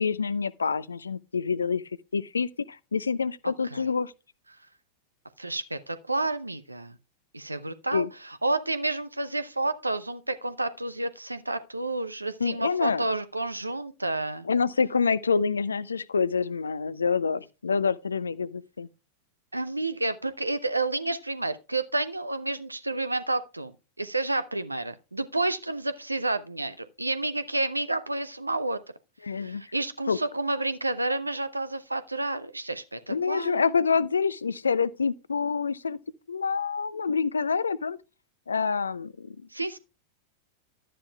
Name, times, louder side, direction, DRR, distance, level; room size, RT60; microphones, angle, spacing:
voice 1, 0.0-1.8 2.1-4.1 7.9-8.1 12.4-13.1 14.4-18.9 29.2-29.6 30.1-30.2 33.1-36.0 36.3-38.0 38.5-39.4, left 5 dB, 75° left, 0.5 m, -27 dB
voice 2, 5.4-7.0 7.3-14.5 19.5-23.7 24.0-28.8 29.3-33.8 39.5-39.8, right 2 dB, 85° right, 0.7 m, -30 dB
12.0 x 10.0 x 2.3 m
figure-of-eight pair, 90°, 0 cm